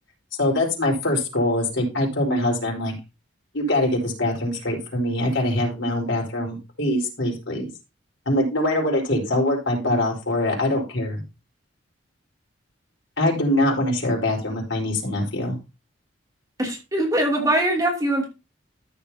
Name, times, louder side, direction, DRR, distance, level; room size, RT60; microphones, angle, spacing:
voice 1, 0.4-2.9 3.5-7.6 8.3-11.2 13.2-15.6, left 1 dB, 75° left, -1 dB, 4.5 m, -23 dB
voice 2, 16.6-18.2, right 1 dB, 20° right, -1 dB, 2.9 m, -22 dB
14.0 x 7.1 x 2.9 m, 0.28 s
head